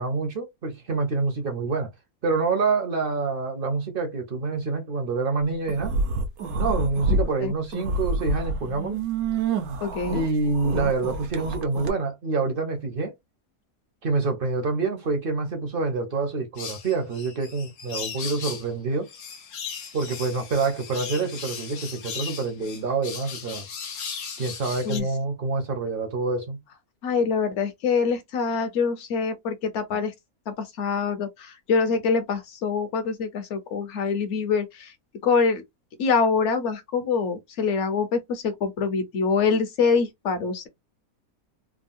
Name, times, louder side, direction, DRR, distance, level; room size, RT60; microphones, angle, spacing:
voice 1, 0.0-1.9 2.2-5.9 6.5-9.0 10.1-13.1 14.0-19.1 19.9-23.7 24.4-26.6, right 4 dB, 50° right, 0.7 m, -27 dB
sound 1, 5.7-7.3 7.6-11.9, right 2 dB, 80° right, 1.2 m, -27 dB
voice 2, 9.8-10.2 24.9-25.1 27.0-30.1 30.5-34.9 35.2-35.6 36.0-40.7, left 5 dB, 60° left, 1.0 m, -25 dB
sound 2, 16.6-18.7 19.1-25.0, left 7 dB, 80° left, 1.2 m, -37 dB
3.6 x 2.0 x 2.5 m
omnidirectional pair, 1.5 m